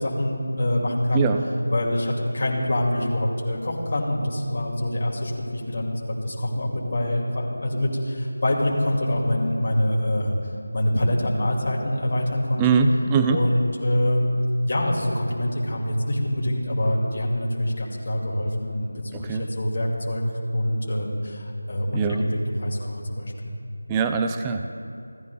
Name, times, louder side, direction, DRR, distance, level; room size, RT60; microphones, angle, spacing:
voice 1, 0.0-1.3 1.7-10.4 10.7-12.8 13.3-14.3 14.7-18.9 19.2-20.2 20.5-23.5, left 1 dB, 40° left, -4 dB, 2.3 m, -25 dB
voice 2, 12.6-13.4 19.1-19.4 21.9-22.2 23.9-24.7, right 5 dB, 10° right, 6 dB, 0.3 m, -22 dB
16.5 x 10.5 x 2.3 m, 2.5 s
figure-of-eight pair, 175°, 0 cm